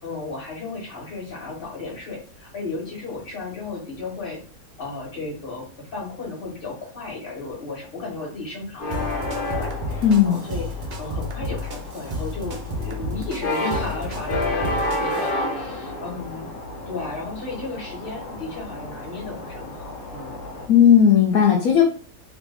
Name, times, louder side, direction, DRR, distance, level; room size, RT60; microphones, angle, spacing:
voice 1, 0.0-4.4 4.8-10.7 11.0-16.5 16.9-20.4, left 3 dB, 40° left, -3 dB, 1.5 m, -34 dB
sound 1, 8.8-20.7, left 1 dB, 90° left, 1.5 m, -31 dB
sound 2, 8.9-15.3, left 1 dB, 60° right, 0.4 m, -32 dB
voice 2, 10.0-10.4 20.7-21.8, left 8 dB, 75° left, 0 dB, 1.1 m, -15 dB
3.1 x 2.6 x 3.4 m, 0.41 s
omnidirectional pair, 1.6 m